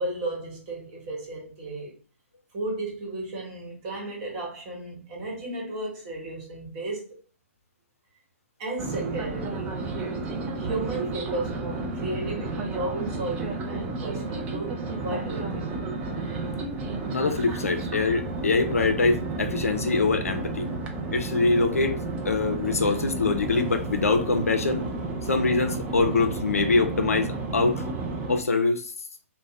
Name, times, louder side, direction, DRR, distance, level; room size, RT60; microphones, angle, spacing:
voice 1, 0.0-1.9 2.5-7.1 8.6-10.2 10.6-15.7, right 2 dB, 35° right, 1.1 m, -34 dB
sound 1, 8.8-28.4, right 3 dB, 20° right, 0.4 m, -32 dB
voice 2, 17.1-20.7 21.1-24.9 25.3-27.8 28.3-28.8, left 3 dB, 80° left, 0.4 m, -24 dB
2.6 x 2.0 x 3.0 m
figure-of-eight pair, 125°, 8 cm